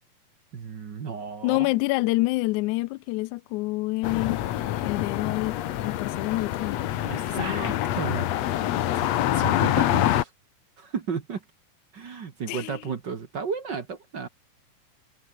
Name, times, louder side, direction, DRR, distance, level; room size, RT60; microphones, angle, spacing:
voice 1, 0.5-1.7 7.0-8.6 9.0-9.1 9.3-10.3 10.8-11.4 11.9-14.3, right 6 dB, 45° right, 1.7 m, -34 dB
voice 2, 1.4-4.4 4.8-5.6 5.8-6.8 7.3-7.7 12.5-12.8, left 21 dB, 80° left, 1.8 m, -27 dB
sound 1, 4.0-10.2, left 13 dB, 65° left, 1.9 m, -26 dB
omnidirectional pair, 3.8 m